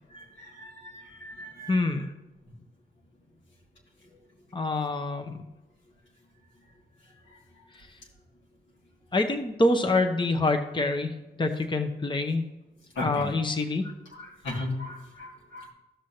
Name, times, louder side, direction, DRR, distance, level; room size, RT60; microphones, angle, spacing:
voice 1, 0.6-0.9 1.2-1.8 13.0-13.2 14.4-15.7, left 2 dB, 80° left, -3 dB, 2.4 m, -35 dB
voice 2, 1.7-2.1 4.5-5.5 7.7-8.0 9.1-12.5 13.0-13.8, left 2 dB, 25° left, 6 dB, 0.9 m, -26 dB
15.0 x 6.2 x 2.8 m, 1.1 s
cardioid pair, 50°, 19 cm